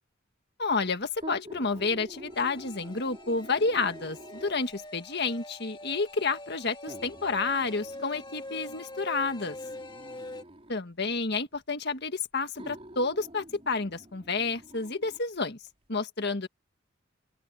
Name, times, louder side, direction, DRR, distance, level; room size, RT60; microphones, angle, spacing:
voice 1, 0.6-9.6 10.7-15.6 15.9-16.5, left 4 dB, 55° left, 1.8 m, -30 dB
sound 1, 1.1-4.8 5.7-5.8 6.9-10.8 11.8-11.9 12.6-15.2 15.7-15.8, right 1 dB, 30° right, 4.5 m, -48 dB
sound 2, 2.3-10.4, left 1 dB, 25° left, 2.5 m, -44 dB
open air
head